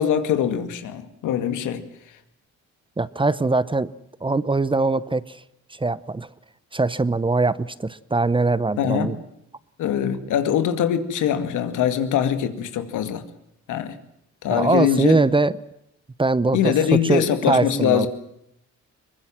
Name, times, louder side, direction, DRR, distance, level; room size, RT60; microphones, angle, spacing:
voice 1, 0.0-1.8 8.8-9.1 9.8-13.2 13.7-14.0 14.4-15.2 16.5-18.1, left 9 dB, 85° left, 9 dB, 2.3 m, -22 dB
voice 2, 3.0-3.9 4.2-5.4 5.7-6.3 6.7-9.2 14.5-15.6 16.2-16.7 17.1-18.1, right 3 dB, 15° right, 17 dB, 0.8 m, -21 dB
23.0 x 20.5 x 7.6 m, 0.79 s
cardioid pair, 90°, 30 cm